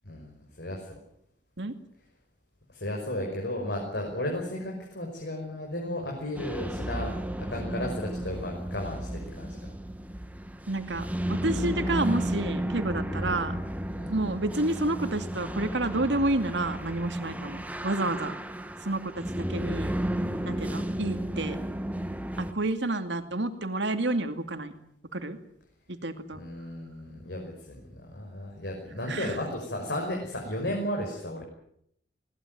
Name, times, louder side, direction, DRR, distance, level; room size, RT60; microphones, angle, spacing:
voice 1, 0.0-0.9 2.7-9.7 13.2-13.3 13.9-14.2 17.3-17.5 20.3-20.8 26.4-31.4, left 1 dB, 60° left, 0 dB, 5.7 m, -34 dB
sound 1, 6.4-22.5, right 1 dB, 10° right, 1.4 m, -33 dB
voice 2, 10.7-13.5 14.1-18.3 18.8-19.2 19.5-19.9 20.4-21.6 22.4-24.7 25.1-25.4 26.0-26.4 29.1-29.4, right 2 dB, 70° right, 8 dB, 2.4 m, -29 dB
21.5 x 19.0 x 9.3 m, 0.72 s
head